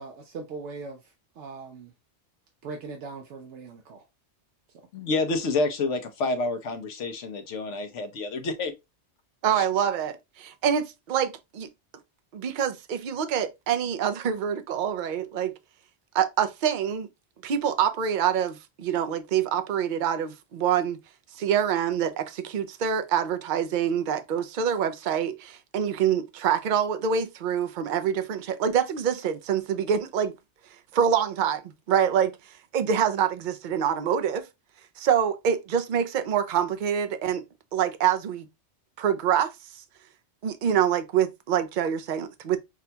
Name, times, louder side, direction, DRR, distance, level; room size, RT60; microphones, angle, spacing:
voice 1, 0.0-1.9 2.6-4.0, right 4 dB, 80° right, 1.0 m, -40 dB
voice 2, 4.9-8.7 9.5-9.6, left 3 dB, 85° left, 1.1 m, -28 dB
voice 3, 9.4-11.7 12.3-15.5 16.1-17.1 17.4-21.0 21.4-30.3 30.9-31.6 31.9-32.4 32.7-34.5 35.0-37.4 37.7-38.5 39.0-39.8 40.4-42.6, right 8 dB, 55° right, 0.6 m, -26 dB
6.0 x 2.2 x 2.7 m
omnidirectional pair, 1.2 m